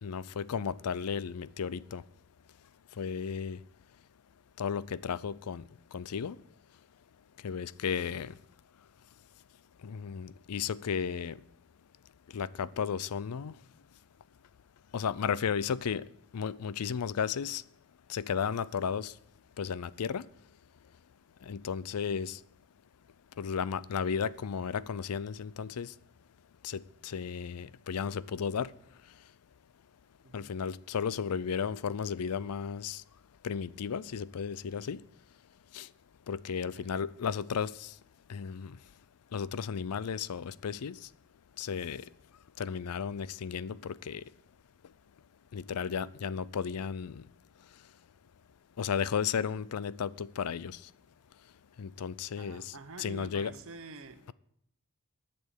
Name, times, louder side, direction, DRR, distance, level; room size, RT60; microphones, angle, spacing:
voice 1, 0.0-2.0 3.0-3.6 4.6-5.6 5.9-6.4 7.4-8.3 9.8-11.4 12.3-13.5 14.9-16.0 16.3-17.6 18.1-19.1 19.6-20.3 21.4-22.4 23.4-25.9 26.6-28.7 30.3-33.0 33.4-35.0 35.7-35.9 36.3-37.9 38.3-38.8 39.3-41.0 41.6-42.1 42.6-44.2 45.5-47.2 48.8-50.8 51.8-53.5, left 6 dB, 80° left, 0.5 m, -34 dB
voice 2, 52.4-54.3, right 3 dB, 65° right, 1.0 m, -47 dB
11.0 x 6.9 x 8.1 m
head